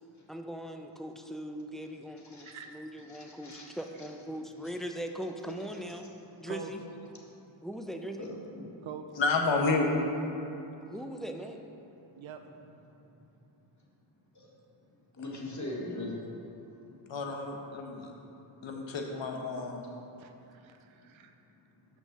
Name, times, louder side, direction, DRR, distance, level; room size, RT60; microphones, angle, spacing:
voice 1, 0.3-6.1 6.4-6.8 7.6-8.3 10.8-11.6, equal, ahead, 4 dB, 0.5 m, -40 dB
voice 2, 2.4-2.8 6.5-6.7 7.1-7.3 8.8-9.0 12.2-12.4 20.2-21.4, right 7 dB, 70° right, 6 dB, 0.7 m, -45 dB
voice 3, 3.1-3.7 8.2-8.7 14.4-14.5 15.2-16.2, left 2 dB, 35° left, -3 dB, 1.8 m, -40 dB
voice 4, 9.2-9.9 17.1-18.1 18.6-19.8, left 3 dB, 65° left, 2 dB, 1.2 m, -30 dB
6.1 x 5.4 x 6.7 m, 2.8 s
cardioid pair, 70°, 49 cm